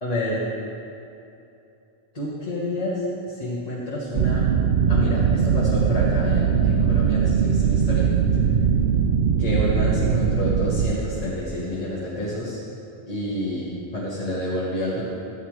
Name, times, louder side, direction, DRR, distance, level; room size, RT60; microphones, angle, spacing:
voice 1, 0.0-0.4 2.1-4.6 4.9-8.1 9.4-12.6 13.1-15.0, left 1 dB, 35° left, -8 dB, 1.5 m, -28 dB
sound 1, 4.1-10.9, right 7 dB, 60° right, 0.6 m, -20 dB
14.0 x 8.6 x 3.2 m, 2.7 s
omnidirectional pair, 1.1 m